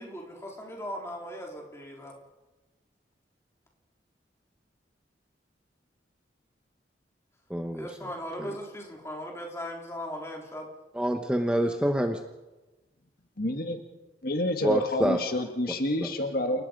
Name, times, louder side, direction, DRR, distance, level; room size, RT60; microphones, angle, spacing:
voice 1, 0.0-2.1 7.8-10.7, equal, 15° left, 0 dB, 4.1 m, -38 dB
voice 2, 7.5-7.9 8.4-8.5 11.0-12.2 14.6-15.2, right 1 dB, 5° right, 5 dB, 1.0 m, -26 dB
voice 3, 13.4-13.8 14.2-16.6, left 1 dB, 55° left, 6 dB, 1.6 m, -28 dB
29.0 x 17.5 x 5.3 m, 1.1 s
head